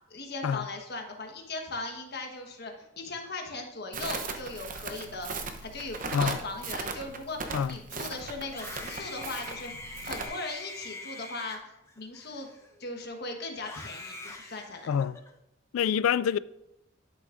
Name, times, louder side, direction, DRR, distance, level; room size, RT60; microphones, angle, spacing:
voice 1, 0.0-5.3 5.6-12.5 12.8-14.9, left 2 dB, 50° left, 1.3 m, -39 dB
Crackle, 3.9-10.3, right 4 dB, 40° right, 0.8 m, -38 dB
Screaming, 8.4-12.9 13.6-15.3, left 2 dB, 15° left, 0.8 m, -43 dB
voice 2, 14.9-15.2 15.7-16.4, left 8 dB, 85° left, 0.3 m, -26 dB
11.5 x 6.9 x 2.6 m
head